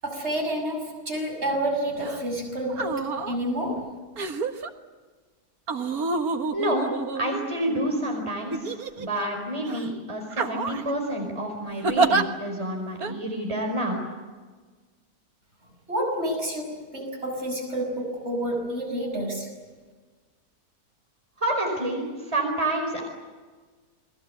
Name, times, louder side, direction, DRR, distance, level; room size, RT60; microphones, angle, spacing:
voice 1, 0.0-4.0 15.9-19.5, right 1 dB, 45° right, 1 dB, 6.7 m, -29 dB
sound 1, 2.0-2.2 2.7-3.4 4.2-4.7 5.7-7.7 8.5-9.3 9.7-9.9 10.3-10.9 11.8-12.2 13.0-13.1, right 4 dB, 70° right, 2.0 m, -27 dB
voice 2, 6.5-6.9 7.1-14.0 21.4-23.0, right 1 dB, 20° right, 2 dB, 5.0 m, -28 dB
29.5 x 21.0 x 8.0 m, 1.4 s
omnidirectional pair, 1.6 m